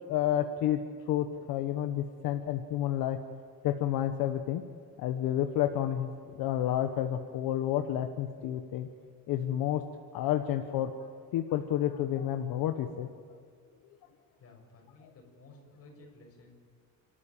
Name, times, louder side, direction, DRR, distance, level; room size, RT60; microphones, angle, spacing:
voice 1, 0.1-0.8 1.1-3.2 3.6-4.6 5.0-8.9 9.3-9.8 10.1-11.1 11.3-13.1, left 11 dB, 80° left, 7 dB, 1.3 m, -30 dB
voice 2, 14.4-16.5, left 2 dB, 40° left, 1 dB, 6.7 m, -55 dB
29.5 x 13.5 x 9.1 m, 2.2 s
cardioid pair, 145°, 35 cm